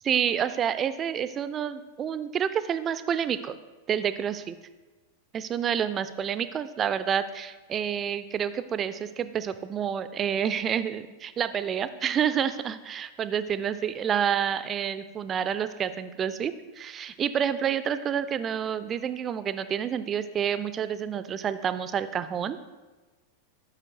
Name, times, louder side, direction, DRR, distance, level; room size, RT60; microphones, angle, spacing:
voice 1, 0.0-3.6 3.9-4.6 5.3-22.6, right 8 dB, 25° right, 13 dB, 0.4 m, -28 dB
7.4 x 6.1 x 3.2 m, 1.2 s
figure-of-eight pair, 90°, 0 cm